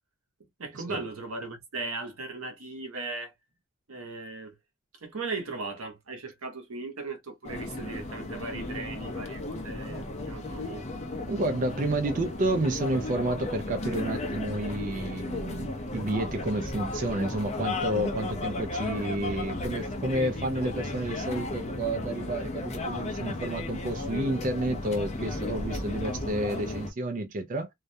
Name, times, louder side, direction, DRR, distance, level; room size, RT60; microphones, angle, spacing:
voice 1, 0.6-3.3 3.9-4.5 5.0-10.9, right 3 dB, 85° right, 0.8 m, -37 dB
sound 1, 7.4-26.9, left 2 dB, 30° left, 0.5 m, -34 dB
voice 2, 11.3-27.7, right 1 dB, 40° right, 0.4 m, -30 dB
2.3 x 2.1 x 2.6 m
head